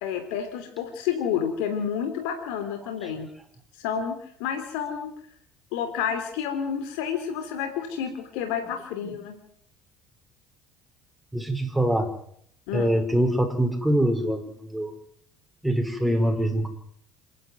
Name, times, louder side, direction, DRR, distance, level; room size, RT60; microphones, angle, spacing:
voice 1, 0.0-3.3 3.7-5.1 5.7-9.4 12.7-12.9, left 8 dB, 80° left, 6 dB, 3.2 m, -30 dB
voice 2, 11.3-12.1 12.7-15.0 15.6-16.7, right 1 dB, ahead, 4 dB, 5.2 m, -24 dB
27.0 x 11.0 x 9.5 m, 0.67 s
supercardioid pair, 95°, 0 cm